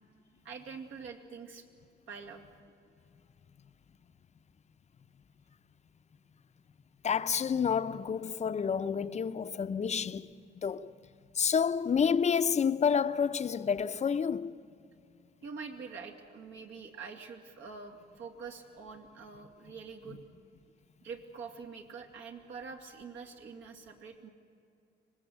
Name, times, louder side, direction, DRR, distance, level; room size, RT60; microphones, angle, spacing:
voice 1, 0.4-1.6 2.1-2.4 15.4-20.2 21.0-24.3, right 5 dB, 75° right, 2.9 m, -45 dB
voice 2, 7.0-10.3 10.6-10.9 11.3-14.5, left 6 dB, 35° left, 0.7 m, -29 dB
25.0 x 19.0 x 8.1 m
cardioid pair, 90°, 20 cm